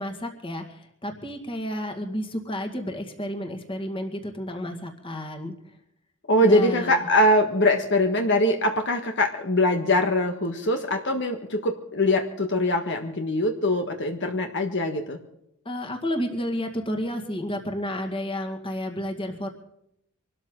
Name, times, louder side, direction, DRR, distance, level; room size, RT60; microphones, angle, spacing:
voice 1, 0.0-5.8 6.4-7.1 15.7-19.5, equal, 25° left, 4 dB, 2.1 m, -31 dB
voice 2, 6.3-15.2, left 1 dB, 55° left, 4 dB, 1.6 m, -22 dB
25.0 x 13.0 x 3.9 m, 0.77 s
head